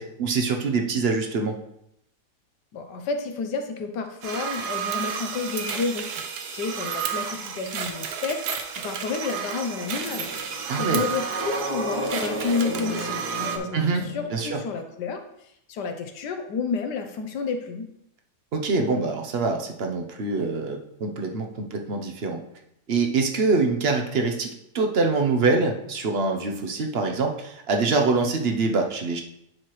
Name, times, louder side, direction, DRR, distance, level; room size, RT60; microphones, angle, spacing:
voice 1, 0.0-1.6 10.7-11.1 13.7-14.1 14.3-14.6 18.5-22.4 22.9-29.2, right 3 dB, 55° right, 3 dB, 0.7 m, -24 dB
voice 2, 2.7-8.4 8.8-13.9 14.1-15.2 15.7-17.9, left 4 dB, 75° left, 6 dB, 1.4 m, -30 dB
sound 1, 4.2-13.6, right 7 dB, 70° right, 1.2 m, -32 dB
sound 2, 10.0-14.7, right 1 dB, 35° right, 1.6 m, -33 dB
10.5 x 4.7 x 3.1 m, 0.77 s
omnidirectional pair, 1.8 m